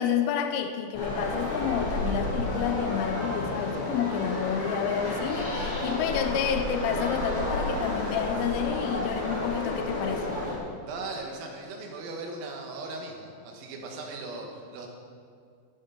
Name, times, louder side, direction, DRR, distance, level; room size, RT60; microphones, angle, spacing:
voice 1, 0.0-10.3, left 8 dB, 85° left, 7 dB, 3.1 m, -30 dB
sound 1, 0.9-10.5, left 1 dB, 60° left, 5.3 m, -31 dB
voice 2, 10.8-14.5 14.7-14.9, right 3 dB, 85° right, 1 dB, 4.3 m, -38 dB
18.5 x 7.4 x 5.8 m, 2.2 s
omnidirectional pair, 5.9 m